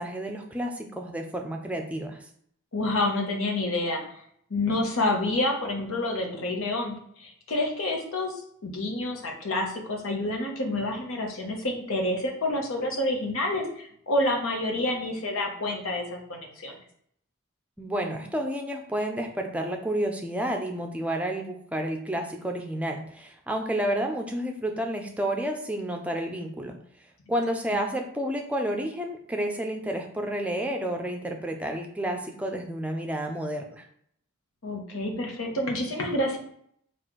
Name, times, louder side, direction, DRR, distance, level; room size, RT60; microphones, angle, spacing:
voice 1, 0.0-2.2 17.8-26.8 27.3-33.8, right 1 dB, 5° right, 3 dB, 0.5 m, -30 dB
voice 2, 2.7-4.0 4.5-8.3 8.6-16.8 27.7-27.8 34.6-36.4, left 1 dB, 85° left, 1 dB, 1.0 m, -28 dB
4.2 x 2.5 x 4.5 m, 0.65 s
head